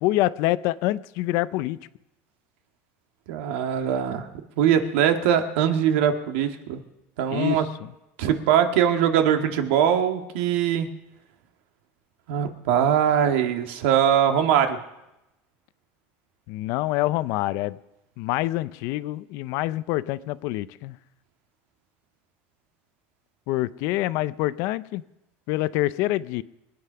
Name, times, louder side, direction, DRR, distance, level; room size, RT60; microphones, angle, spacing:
voice 1, 0.0-1.8 7.3-7.9 16.5-17.8 18.2-21.0 23.5-25.0 25.5-26.4, left 17 dB, 55° left, 16 dB, 0.6 m, -26 dB
voice 2, 3.3-4.3 4.6-6.8 7.2-7.6 8.2-10.9 12.3-14.8, right 9 dB, 80° right, 6 dB, 1.8 m, -22 dB
23.5 x 9.6 x 5.7 m, 0.92 s
cardioid pair, 165°, 6 cm